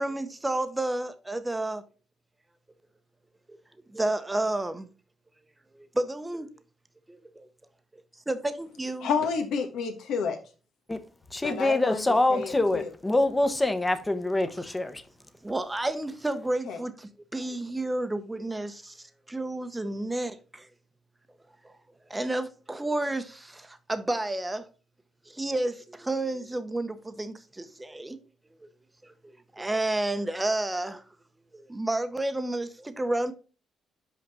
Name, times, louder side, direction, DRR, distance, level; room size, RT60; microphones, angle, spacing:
voice 1, 0.0-1.8 3.5-3.6 3.9-4.9 5.7-6.5 7.1-7.5 8.3-9.1 15.4-20.7 21.6-21.7 22.1-24.6 25.3-28.2 28.6-28.7 29.0-29.1 29.6-31.0 31.5-33.3, right 2 dB, 15° right, 0.8 m, -31 dB
voice 2, 9.0-10.4 11.4-12.0 12.3-12.9 16.6-16.8, left 6 dB, 80° left, 1.3 m, -30 dB
voice 3, 11.3-15.0, left 2 dB, 15° left, 0.9 m, -25 dB
5.5 x 5.0 x 4.2 m
cardioid pair, 90°, 0 cm